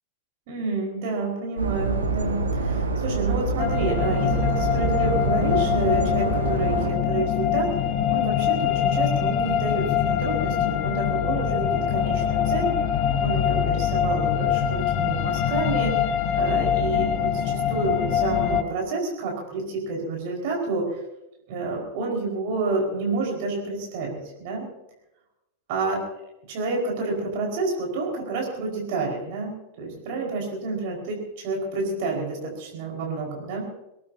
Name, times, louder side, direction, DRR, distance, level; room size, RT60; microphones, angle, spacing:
voice 1, 0.5-7.7 8.1-12.7 13.2-16.0 16.3-21.0 21.5-24.7 25.7-26.0 26.5-33.7, right 3 dB, 50° right, 0 dB, 5.0 m, -29 dB
sound 1, 1.6-6.9, right 3 dB, 75° right, 2.5 m, -26 dB
sound 2, 3.6-18.6, left 9 dB, 40° left, 1.0 m, -24 dB
25.0 x 18.5 x 2.8 m, 0.91 s
figure-of-eight pair, 90°, 0 cm